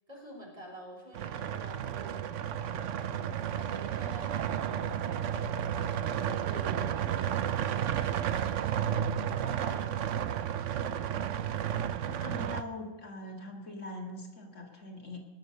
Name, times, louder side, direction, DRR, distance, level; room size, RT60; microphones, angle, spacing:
voice 1, 0.1-2.5 3.1-8.8 9.3-10.0, equal, 30° right, -1 dB, 3.8 m, -48 dB
sound 1, 1.1-12.6, right 9 dB, 75° right, 1.0 m, -32 dB
voice 2, 12.0-15.2, left 2 dB, 70° left, 1 dB, 2.4 m, -42 dB
20.0 x 6.7 x 6.7 m, 1.3 s
omnidirectional pair, 1.3 m